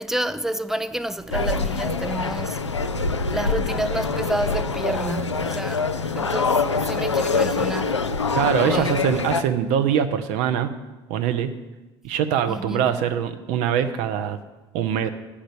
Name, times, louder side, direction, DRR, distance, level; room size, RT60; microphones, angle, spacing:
voice 1, 0.0-2.7 3.3-5.9 6.2-8.1 8.6-9.0 12.5-12.8, right 1 dB, 5° right, 0.4 m, -29 dB
sound 1, 1.3-9.4, left 4 dB, 85° left, 0.4 m, -24 dB
voice 2, 8.3-10.7 11.1-11.5 12.0-14.4 14.7-15.1, right 9 dB, 55° right, 0.7 m, -23 dB
10.0 x 5.1 x 6.9 m
figure-of-eight pair, 60°, 15 cm